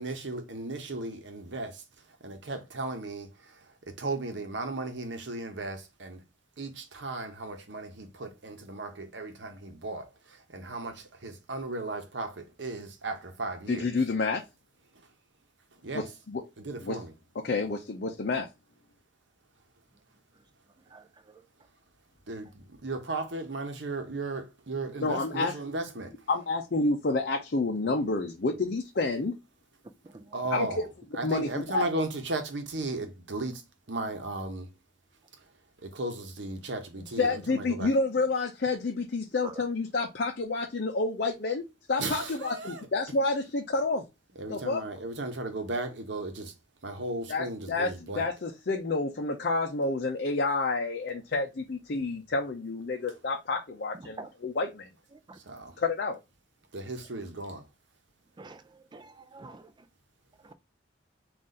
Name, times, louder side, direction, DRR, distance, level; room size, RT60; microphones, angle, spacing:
voice 1, 0.0-1.8 2.2-3.5 3.9-6.2 6.6-13.9 15.8-16.1 16.6-17.1 22.3-26.1 30.3-30.8 31.1-33.6 33.9-34.7 35.8-37.9 42.0-42.9 44.4-46.5 46.8-48.3 55.5-55.7 56.7-57.6, right 2 dB, 70° right, 0.9 m, -36 dB
voice 2, 13.7-14.4 15.9-16.4 16.8-17.0 17.4-18.5 25.0-25.6 26.3-29.3 30.5-30.7 31.2-31.9 37.2-41.6 41.9-44.0 44.5-44.8 47.3-54.9 55.8-56.2, left 3 dB, 55° left, 0.6 m, -29 dB
voice 3, 20.9-21.4 30.0-30.5 39.4-39.6 53.9-54.3 55.1-55.4 58.4-59.9 60.4-60.5, right 3 dB, 25° right, 0.4 m, -47 dB
4.0 x 2.5 x 3.7 m
head